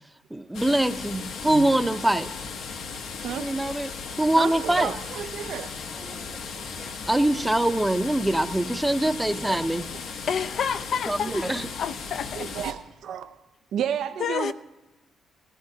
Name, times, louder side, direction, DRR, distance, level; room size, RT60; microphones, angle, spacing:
voice 1, 0.3-2.3 3.4-3.9 4.2-4.9 6.0-6.3 6.8-9.9 11.1-11.6, right 1 dB, 10° right, 0.6 m, -24 dB
sound 1, 0.5-12.7, left 5 dB, 80° left, 1.0 m, -36 dB
voice 2, 3.2-3.6 4.4-5.7 6.9-7.0 12.4-13.4 13.7-14.5, right 9 dB, 75° right, 0.4 m, -31 dB
voice 3, 10.3-12.5 14.2-14.5, left 7 dB, 60° left, 0.4 m, -29 dB
18.0 x 14.5 x 2.7 m
cardioid pair, 90°, 0 cm